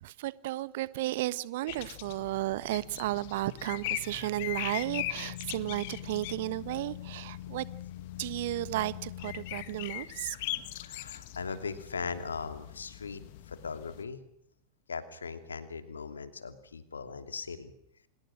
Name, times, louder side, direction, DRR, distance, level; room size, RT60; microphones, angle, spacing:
voice 1, 0.0-7.6 8.2-10.6, right 16 dB, 55° right, 1.3 m, -34 dB
sound 1, 1.7-14.0, left 15 dB, 50° left, 1.7 m, -40 dB
voice 2, 10.8-13.2 13.5-14.2 14.9-17.7, left 5 dB, 75° left, 2.8 m, -39 dB
28.5 x 26.0 x 6.3 m
figure-of-eight pair, 90°, 0 cm